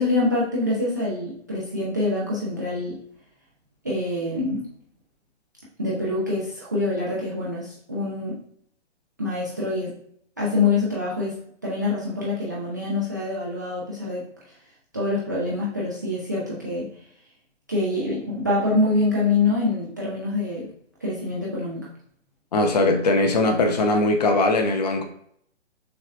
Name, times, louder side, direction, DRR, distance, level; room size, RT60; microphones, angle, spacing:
voice 1, 0.0-3.0 3.8-4.7 5.8-8.4 9.2-9.9 10.4-11.4 11.6-14.2 14.9-16.9 17.7-20.7 21.0-21.8, left 2 dB, 15° right, -6 dB, 0.4 m, -25 dB
voice 2, 22.5-25.0, left 2 dB, 35° left, 6 dB, 0.6 m, -20 dB
6.4 x 2.3 x 3.3 m, 0.67 s
hypercardioid pair, 145°, 36 cm